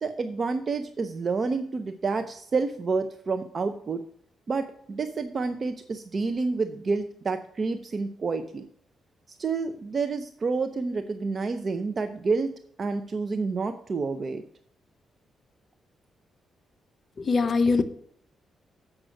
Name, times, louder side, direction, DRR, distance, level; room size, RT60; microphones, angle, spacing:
voice 1, 0.0-4.0 4.5-8.7 9.4-12.5 12.8-14.4, right 4 dB, 35° right, 8 dB, 0.6 m, -29 dB
voice 2, 17.2-17.8, left 4 dB, 40° left, 10 dB, 0.7 m, -22 dB
7.7 x 6.0 x 6.3 m, 0.63 s
cardioid pair, 130°, 0 cm